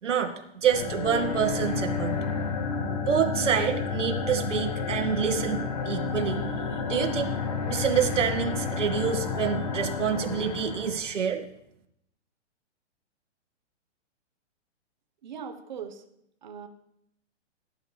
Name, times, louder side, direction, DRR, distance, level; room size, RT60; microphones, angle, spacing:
voice 1, 0.0-0.3 0.6-2.2 3.0-5.6 5.8-7.3 7.7-11.4, right 7 dB, 90° right, 3 dB, 2.2 m, -27 dB
sound 1, 0.6-11.1, left 4 dB, 30° left, 1.2 m, -31 dB
voice 2, 15.2-16.0 16.4-16.7, right 7 dB, 40° right, 5 dB, 1.3 m, -39 dB
17.5 x 10.5 x 3.5 m, 0.77 s
hypercardioid pair, 175°, 36 cm